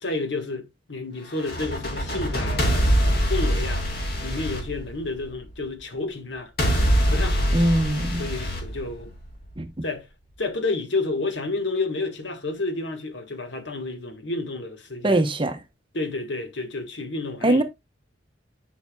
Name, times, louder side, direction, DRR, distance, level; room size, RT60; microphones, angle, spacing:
voice 1, 0.0-3.9 4.2-6.5 7.1-7.5 8.2-9.1 9.8-10.1 10.4-15.3 15.9-17.6, left 3 dB, 80° left, 1.5 m, -30 dB
sound 1, 1.3-5.4 6.6-9.4, equal, 60° left, 2.4 m, -24 dB
voice 2, 7.5-8.3 9.6-9.8 15.0-15.6 17.4-17.6, right 1 dB, 30° right, 0.9 m, -22 dB
10.0 x 5.8 x 2.3 m
head